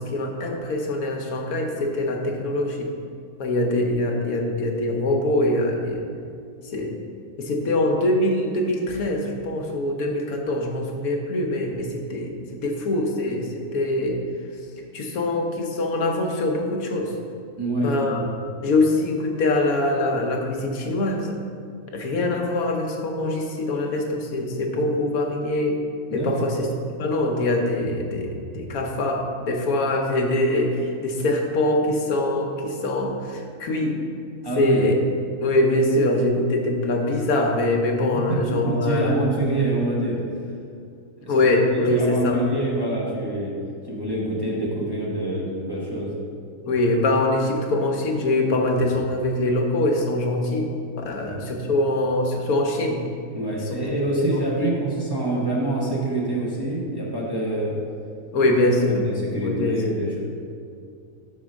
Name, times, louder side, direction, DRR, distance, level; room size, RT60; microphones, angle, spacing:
voice 1, 0.0-2.9 3.4-6.0 6.7-7.0 7.4-12.3 12.6-14.2 14.9-17.1 17.8-18.2 18.6-21.4 21.9-25.8 26.1-26.7 27.0-34.0 34.6-35.0 35.4-39.3 41.3-42.4 46.6-50.7 51.0-53.0 54.2-54.7 58.3-59.0 59.4-60.0, left 1 dB, 85° left, 2 dB, 1.3 m, -23 dB
voice 2, 17.6-18.3 26.1-26.5 34.4-34.8 38.3-40.2 41.2-41.3 41.7-43.5 43.9-46.2 51.2-51.4 53.3-57.8 58.3-58.5 58.9-60.2, right 1 dB, 20° right, -5 dB, 0.9 m, -26 dB
5.5 x 4.4 x 6.2 m, 2.4 s
omnidirectional pair, 1.5 m